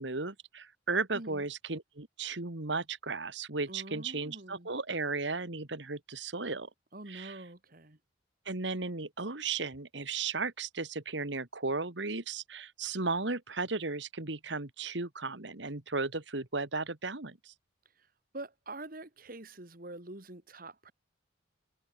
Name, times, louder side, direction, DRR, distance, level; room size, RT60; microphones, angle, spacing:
voice 1, 0.0-6.7 7.1-7.4 8.5-17.5, right 3 dB, 70° right, 2.0 m, -35 dB
voice 2, 1.1-1.4 3.7-4.7 6.9-8.0 18.0-18.1 18.3-20.9, right 2 dB, 50° right, 2.4 m, -45 dB
head